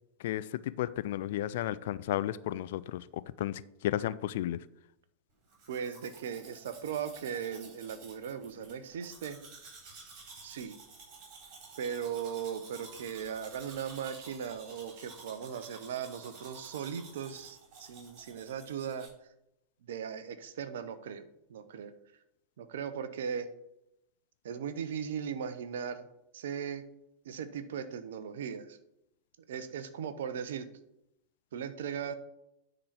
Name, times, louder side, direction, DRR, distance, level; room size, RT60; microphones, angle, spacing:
voice 1, 0.8-3.0 3.4-4.6, left 13 dB, 55° left, 0.3 m, -33 dB
Domestic sounds home sounds, 5.5-19.1, right 4 dB, 40° right, 3.6 m, -52 dB
voice 2, 5.7-9.4 10.4-10.7 11.8-19.1 19.9-21.2 21.5-21.9 22.6-23.5 24.4-26.1 26.3-26.8 27.2-28.8 29.5-30.7 31.5-32.1, right 7 dB, 60° right, 0.8 m, -38 dB
9.9 x 3.9 x 5.9 m
figure-of-eight pair, 90°, 0 cm